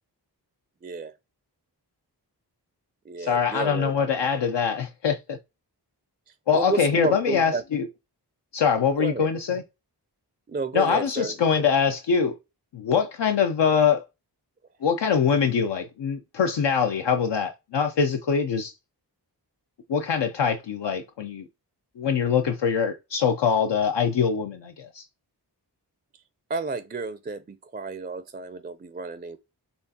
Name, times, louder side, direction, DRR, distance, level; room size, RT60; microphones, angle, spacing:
voice 1, 0.8-1.1 3.1-3.9 6.5-7.6 9.0-9.3 10.5-11.7 26.5-29.4, right 4 dB, 25° right, 0.4 m, -31 dB
voice 2, 3.2-5.4 6.5-7.9 8.5-9.6 10.7-12.3 12.7-14.0 14.8-18.7 19.9-21.5 22.0-25.0, left 6 dB, 80° left, 0.5 m, -23 dB
4.4 x 3.2 x 2.7 m
wide cardioid pair, 50°, 42 cm